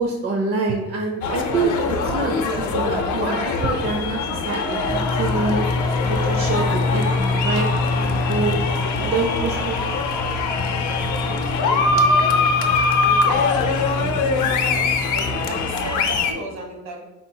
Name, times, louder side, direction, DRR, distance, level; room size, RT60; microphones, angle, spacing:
voice 1, 0.0-5.6 6.0-7.7 7.9-8.6 9.0-9.8, right 3 dB, 50° right, 1 dB, 0.6 m, -26 dB
sound 1, 1.2-16.3, left 4 dB, 75° left, 0.6 m, -22 dB
sound 2, 4.9-15.5, left 2 dB, 20° left, 0.4 m, -27 dB
voice 2, 6.2-6.5 6.8-7.1 8.7-9.7 10.9-13.5 13.9-17.0, right 1 dB, 65° right, 2 dB, 1.2 m, -37 dB
4.2 x 3.8 x 2.7 m, 0.99 s
cardioid pair, 90°, 30 cm